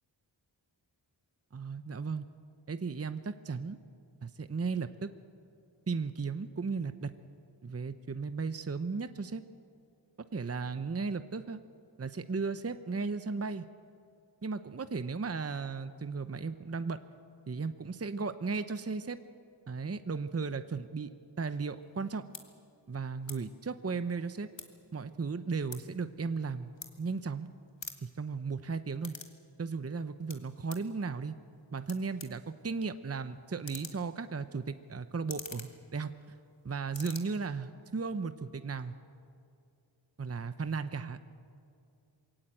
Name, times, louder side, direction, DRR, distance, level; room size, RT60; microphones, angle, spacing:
voice 1, 1.5-2.3 2.7-3.8 4.2-5.1 5.9-7.1 7.6-9.4 10.3-11.6 12.0-13.7 14.4-17.0 17.5-19.2 19.7-22.2 22.9-24.5 24.9-26.7 27.0-27.5 28.0-29.2 29.6-31.4 31.7-36.3 36.6-38.9 40.2-41.2, right 4 dB, 30° right, 11 dB, 0.8 m, -35 dB
sound 1, 21.8-22.0 22.3-22.4 23.2-23.4 23.7-24.9 25.2-27.4 27.7-29.4 29.7-30.9 31.5-31.6 31.9-36.6 36.8-37.2, left 4 dB, 70° left, 2.0 m, -47 dB
22.5 x 16.5 x 9.1 m, 2.4 s
wide cardioid pair, 55°, 46 cm